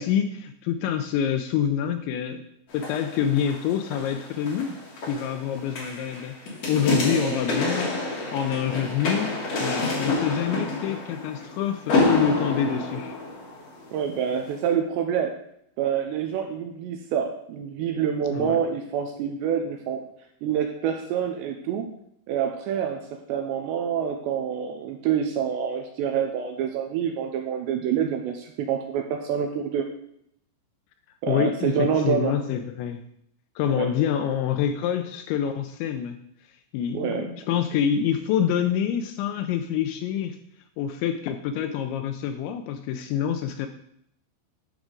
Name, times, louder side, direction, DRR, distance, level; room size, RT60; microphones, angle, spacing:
voice 1, 0.0-2.4 2.7-4.8 5.1-6.4 6.7-8.0 8.3-13.2 18.3-18.6 31.3-33.0 33.6-36.2 36.5-40.4 40.8-43.7, left 9 dB, 85° left, 8 dB, 2.7 m, -26 dB
sound 1, 2.7-14.0 14.5-14.6, left 2 dB, 65° left, 1.5 m, -28 dB
voice 2, 7.0-7.4 13.9-15.4 15.8-20.0 20.4-21.9 22.3-23.0 23.3-29.9 31.2-32.4 33.7-33.9 36.9-37.3, right 8 dB, 85° right, 4 dB, 2.6 m, -27 dB
10.5 x 6.2 x 3.8 m, 0.72 s
omnidirectional pair, 5.6 m